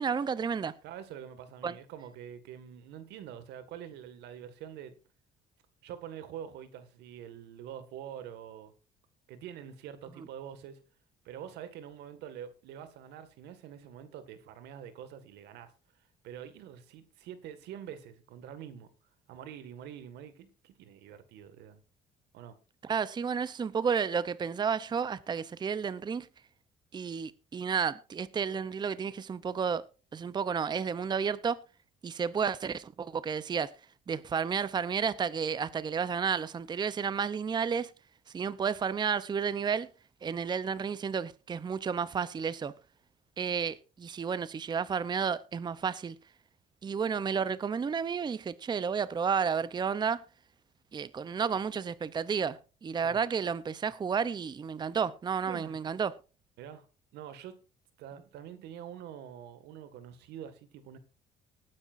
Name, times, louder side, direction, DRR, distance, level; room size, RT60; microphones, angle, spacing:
voice 1, 0.0-0.7 1.6-1.8 22.8-26.3 26.9-29.9 30.1-31.6 32.0-33.7 34.1-37.9 38.3-39.9 40.2-42.7 43.4-46.2 46.8-50.2 50.9-56.1, right 6 dB, 25° right, 0.6 m, -31 dB
voice 2, 0.8-4.9 5.8-8.7 9.3-10.8 11.2-15.7 16.2-18.9 19.3-21.8 22.3-22.6 53.0-53.2 55.4-55.8 56.6-56.9 57.1-57.6 58.0-61.0, right 9 dB, 85° right, 1.9 m, -45 dB
19.5 x 9.8 x 2.6 m
cardioid pair, 110°, 17 cm